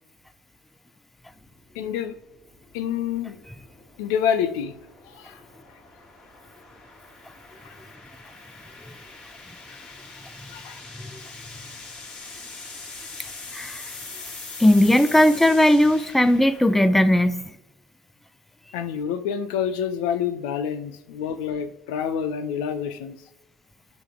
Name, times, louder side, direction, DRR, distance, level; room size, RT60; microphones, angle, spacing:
sound 1, 1.3-17.6, left 3 dB, 40° left, 2.9 m, -43 dB
voice 1, 1.7-2.1 2.7-3.4 4.0-4.8 5.2-5.4 7.6-7.7 9.7-9.8 10.5-10.8 18.7-23.2, left 8 dB, 70° left, 0.7 m, -27 dB
voice 2, 14.6-17.4, left 1 dB, 5° left, 0.6 m, -17 dB
12.0 x 4.1 x 3.7 m
hypercardioid pair, 70°, 4 cm